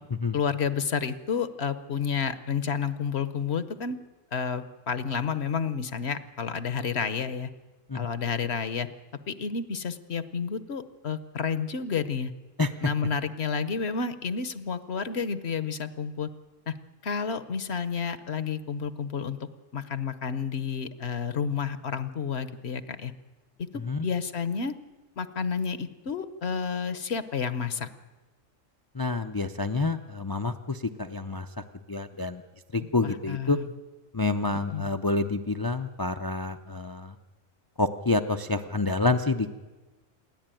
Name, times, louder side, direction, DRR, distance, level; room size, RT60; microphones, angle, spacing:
voice 1, 0.3-4.0 4.3-7.5 7.9-8.9 9.3-12.3 12.8-16.3 16.7-16.8 17.0-19.4 19.7-23.1 23.6-24.7 25.2-27.9 33.0-33.7 34.7-34.9, left 6 dB, 55° left, 13 dB, 1.1 m, -30 dB
voice 2, 23.7-24.1 28.9-32.4 32.7-33.6 34.1-37.1 37.8-39.5, left 3 dB, 25° left, 5 dB, 0.5 m, -28 dB
28.0 x 11.0 x 9.1 m, 1.2 s
omnidirectional pair, 1.3 m